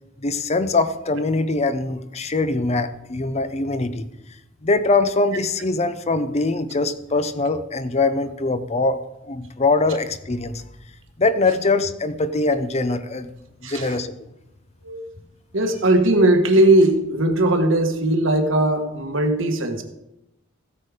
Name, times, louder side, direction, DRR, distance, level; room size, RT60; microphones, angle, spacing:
voice 1, 0.2-4.1 4.6-10.6 11.2-13.3 13.6-14.1, left 3 dB, 30° left, 12 dB, 0.7 m, -22 dB
voice 2, 13.6-14.0 14.8-15.0 15.5-19.8, right 1 dB, 65° right, 5 dB, 1.5 m, -18 dB
15.0 x 8.5 x 5.0 m, 0.90 s
head